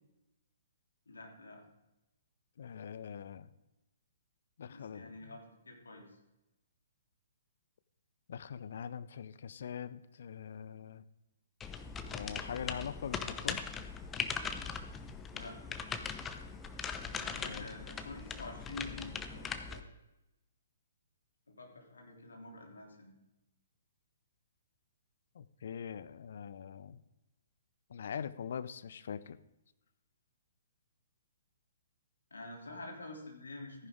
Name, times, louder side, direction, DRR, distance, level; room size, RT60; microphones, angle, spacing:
voice 1, 1.1-1.6 4.7-6.2 15.3-15.6 17.1-19.9 21.5-23.2 32.3-33.9, left 2 dB, 70° left, 0 dB, 3.1 m, -48 dB
voice 2, 2.6-3.5 4.6-5.3 8.3-11.0 12.1-13.6 17.4-17.6 25.3-27.0 27.9-29.4, left 7 dB, 55° left, 14 dB, 0.6 m, -43 dB
sound 1, 11.6-19.8, left 6 dB, 15° left, 0.7 m, -40 dB
14.5 x 10.0 x 3.7 m, 0.95 s
figure-of-eight pair, 120°, 0 cm